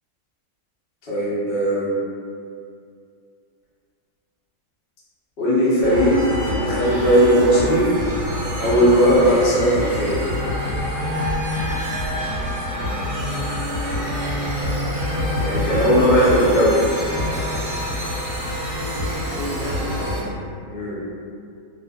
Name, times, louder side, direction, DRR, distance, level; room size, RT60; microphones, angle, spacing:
voice 1, 1.1-1.9 5.4-6.2 6.5-7.8 8.6-10.2 15.4-16.8 20.7-21.0, equal, 45° left, -9 dB, 0.8 m, -18 dB
sound 1, 5.8-20.2, equal, 55° right, 0.9 m, -26 dB
voice 2, 19.2-20.3, equal, 75° left, -7 dB, 1.1 m, -35 dB
2.6 x 2.5 x 2.2 m, 2.4 s
omnidirectional pair, 1.6 m